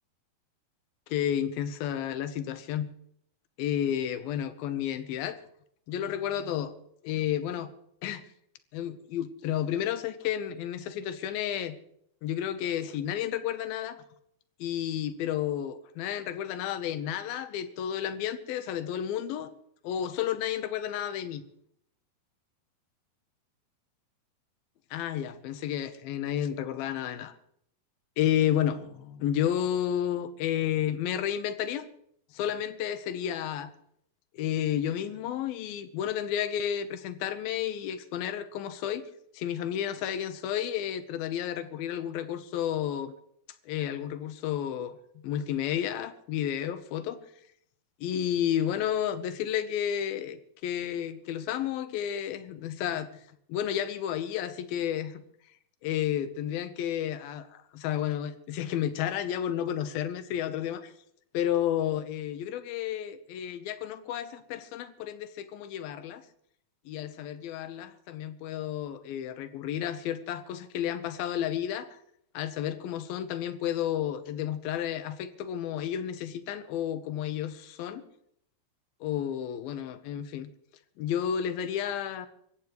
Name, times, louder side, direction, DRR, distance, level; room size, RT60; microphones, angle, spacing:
voice 1, 1.1-2.9 3.6-5.4 5.9-6.7 7.0-7.7 8.0-8.2 8.7-11.8 12.2-14.0 14.6-19.5 19.8-21.4 24.9-27.3 28.2-31.9 32.3-33.7 34.3-39.1 39.3-43.1 43.7-45.0 45.2-47.2 48.0-50.4 50.6-53.1 53.5-55.2 55.8-60.9 61.3-66.2 66.9-72.0 72.3-78.1 79.0-80.5 81.0-82.3, left 10 dB, 80° left, 11 dB, 2.7 m, -31 dB
26.0 x 14.5 x 3.2 m, 0.69 s
omnidirectional pair, 4.4 m